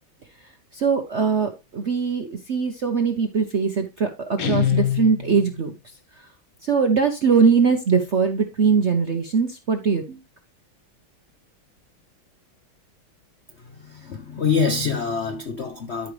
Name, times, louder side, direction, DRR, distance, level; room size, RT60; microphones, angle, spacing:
voice 1, 0.7-5.7 6.2-6.3 6.6-10.2, right 5 dB, 60° right, 0.7 m, -21 dB
Guitar, 4.4-5.7, left 9 dB, 80° left, 2.3 m, -24 dB
voice 2, 13.8-16.1, left 5 dB, 65° left, 0.6 m, -25 dB
12.5 x 5.2 x 3.2 m
omnidirectional pair, 2.3 m